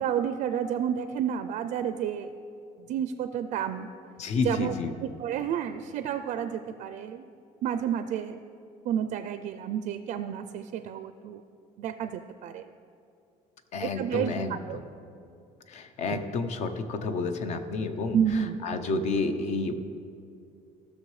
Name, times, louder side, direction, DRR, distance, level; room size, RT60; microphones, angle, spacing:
voice 1, 0.0-2.3 2.8-3.9 4.4-4.7 5.0-7.3 7.6-8.4 8.8-11.4 11.8-12.7 13.8-14.8 16.1-16.2 18.1-18.6, right 9 dB, 60° right, 9 dB, 0.4 m, -30 dB
voice 2, 4.2-4.9 13.7-14.8 15.7-19.7, left 3 dB, 55° left, 8 dB, 0.7 m, -30 dB
15.5 x 6.5 x 3.2 m, 2.5 s
cardioid pair, 140°, 14 cm